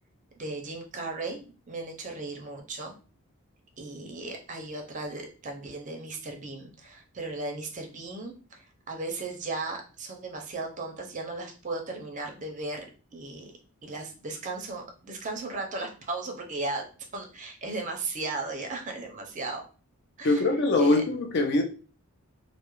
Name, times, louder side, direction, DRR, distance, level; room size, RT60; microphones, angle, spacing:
voice 1, 0.4-3.0 3.8-12.8 13.1-13.5 13.8-19.6 20.2-21.0, right 3 dB, 35° right, 0.4 m, -36 dB
voice 2, 20.2-21.6, left 2 dB, 50° left, 0.4 m, -23 dB
2.3 x 2.0 x 2.9 m
head